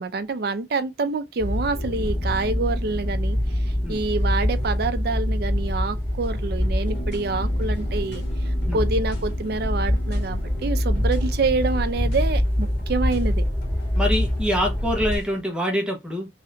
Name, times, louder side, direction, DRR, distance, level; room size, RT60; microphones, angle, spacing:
voice 1, 0.0-8.2 8.7-13.4, right 3 dB, 60° right, 0.5 m, -27 dB
sound 1, 1.4-15.2, left 1 dB, 15° left, 1.4 m, -25 dB
sound 2, 1.7-11.9, right 2 dB, 30° left, 1.8 m, -44 dB
sound 3, 6.2-15.5, right 1 dB, 80° left, 1.7 m, -43 dB
voice 2, 13.9-16.3, equal, 5° right, 0.8 m, -25 dB
3.3 x 2.6 x 3.8 m
head